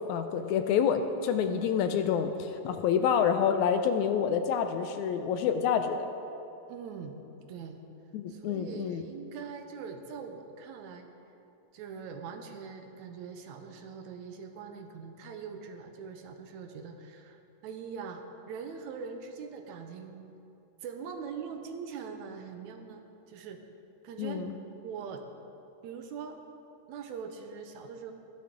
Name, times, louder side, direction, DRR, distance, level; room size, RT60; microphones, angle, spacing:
voice 1, 0.1-6.1 8.1-9.0 24.2-24.5, left 7 dB, 80° left, 8 dB, 1.9 m, -28 dB
voice 2, 6.7-7.2 7.5-7.8 8.3-11.1 11.7-20.3 20.8-23.0 23.3-23.6 24.0-24.4 24.8-25.2 25.8-26.4 26.9-28.1, right 6 dB, 75° right, 5 dB, 2.0 m, -42 dB
14.5 x 11.0 x 3.8 m, 2.9 s
omnidirectional pair, 3.6 m